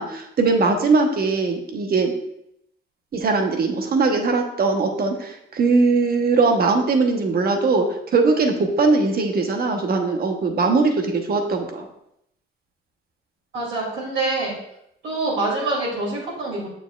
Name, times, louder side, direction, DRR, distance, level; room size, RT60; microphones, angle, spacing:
voice 1, 0.0-2.1 3.1-11.8, right 3 dB, 50° right, 4 dB, 1.1 m, -20 dB
voice 2, 13.5-14.5 15.0-16.7, right 2 dB, 70° right, -6 dB, 2.7 m, -25 dB
6.8 x 6.7 x 2.4 m, 0.78 s
cardioid pair, 90°, 20 cm